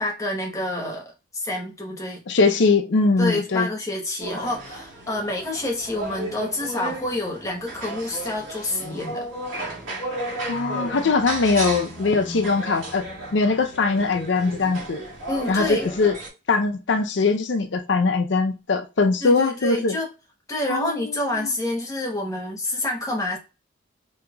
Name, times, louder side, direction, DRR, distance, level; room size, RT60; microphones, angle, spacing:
voice 1, 0.0-2.2 3.2-9.3 11.0-11.1 15.3-15.9 19.2-20.1 20.5-23.4, left 2 dB, 15° left, 1.0 m, -28 dB
voice 2, 2.3-3.7 10.5-13.0 13.3-15.0 15.5-16.2 16.5-20.0 20.7-21.5, left 4 dB, 60° left, 0.5 m, -21 dB
sound 1, 4.2-16.3, right 1 dB, 75° right, 1.9 m, -34 dB
5.2 x 2.8 x 2.3 m
head